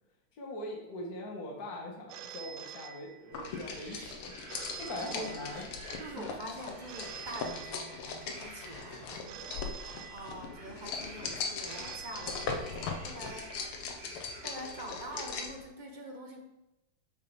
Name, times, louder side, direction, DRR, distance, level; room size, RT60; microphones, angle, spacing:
voice 1, 0.4-4.3 4.8-5.7 6.2-6.3, left 1 dB, 45° left, -1 dB, 2.1 m, -41 dB
Telephone, 2.1-3.6 4.5-6.0 6.9-8.4 9.3-10.8 11.7-13.2, right 8 dB, 75° right, 1.2 m, -47 dB
sound 1, 3.3-15.6, left 4 dB, 85° left, 1.9 m, -40 dB
sound 2, 3.3-15.3, right 2 dB, 60° right, 2.6 m, -51 dB
voice 2, 5.0-5.5 6.0-9.4 9.7-13.5 14.4-16.4, right 1 dB, 30° right, 1 dB, 1.1 m, -45 dB
7.8 x 5.8 x 5.1 m, 0.93 s
omnidirectional pair, 2.3 m